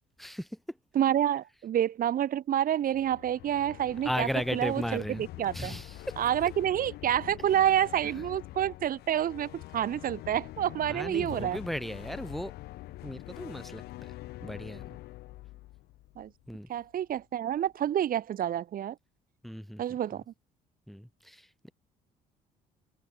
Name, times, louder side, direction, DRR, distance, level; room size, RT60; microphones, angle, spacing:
voice 1, 0.2-0.8 4.0-5.2 5.5-6.2 10.9-12.5 13.0-14.2 14.4-15.0 16.5-16.7 19.4-19.8 20.1-20.2 20.9-21.7, equal, ahead, 7.6 m, -36 dB
voice 2, 0.9-5.8 6.2-11.6 16.2-16.3 16.7-18.9 19.8-20.2, right 10 dB, 60° right, 3.0 m, -28 dB
sound 1, 2.8-16.9, left 17 dB, 75° left, 2.6 m, -45 dB
supercardioid pair, 80°, 17 cm